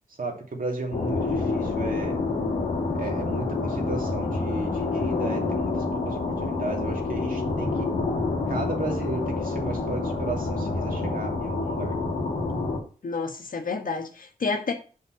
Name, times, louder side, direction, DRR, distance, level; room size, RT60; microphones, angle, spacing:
voice 1, 0.2-2.2 2.9-7.9 8.5-12.0, right 2 dB, 60° right, 2.7 m, -34 dB
sound 1, 0.9-12.8, left 3 dB, 90° left, 1.9 m, -28 dB
voice 2, 13.0-14.7, left 4 dB, 60° left, 1.4 m, -29 dB
5.6 x 5.5 x 6.3 m
cardioid pair, 40°, 16 cm